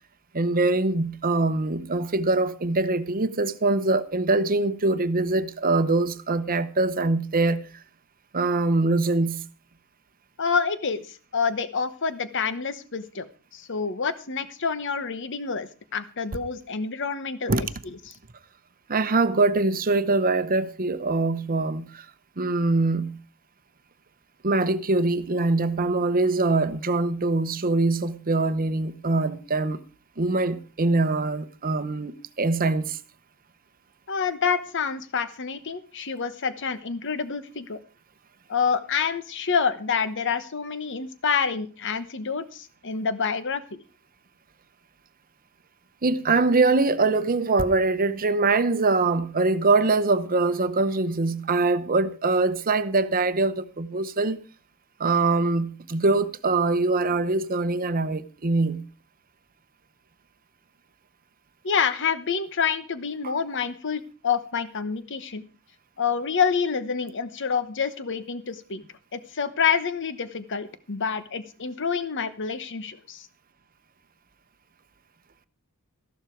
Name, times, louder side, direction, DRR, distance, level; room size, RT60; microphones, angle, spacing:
voice 1, 0.3-7.7 8.3-9.5 17.5-17.6 18.9-22.1 22.4-23.2 24.4-29.8 30.2-33.0 46.0-54.4 55.0-58.9 63.2-63.3, right 3 dB, 40° right, 0.9 m, -23 dB
voice 2, 10.4-13.2 13.5-17.7 34.1-37.8 38.5-43.8 61.6-65.5 66.0-68.8 69.1-73.3, left 6 dB, 55° left, 1.0 m, -27 dB
14.0 x 12.0 x 4.5 m
head